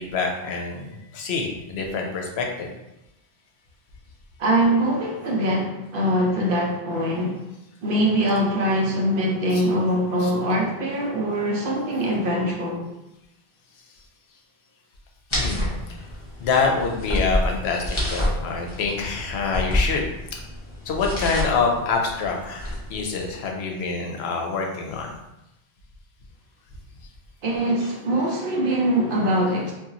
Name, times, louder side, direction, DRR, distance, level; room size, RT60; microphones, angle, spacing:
voice 1, 0.0-2.7 9.5-9.6 10.2-10.3 15.4-15.7 16.0-16.1 16.4-20.0 20.9-25.1, left 4 dB, 80° left, 1 dB, 0.8 m, -26 dB
voice 2, 4.4-7.4 7.8-12.9 27.4-29.7, right 1 dB, 60° right, -1 dB, 0.7 m, -23 dB
sound 1, 15.3-23.0, left 1 dB, 30° left, 0.7 m, -28 dB
2.9 x 2.3 x 2.5 m, 0.90 s
omnidirectional pair, 1.1 m